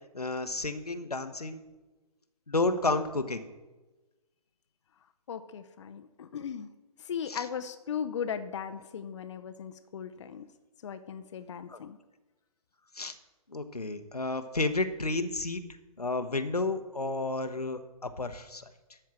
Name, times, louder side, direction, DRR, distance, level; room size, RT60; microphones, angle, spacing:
voice 1, 0.1-1.6 2.5-3.5 7.3-7.4 11.7-11.8 13.0-13.1 13.5-15.6 16.0-18.6, left 2 dB, 90° left, 9 dB, 1.0 m, -31 dB
voice 2, 5.3-6.7 7.0-10.4 10.8-12.0, left 7 dB, 50° left, 9 dB, 0.6 m, -37 dB
12.5 x 4.6 x 7.5 m, 1.2 s
figure-of-eight pair, 135°, 19 cm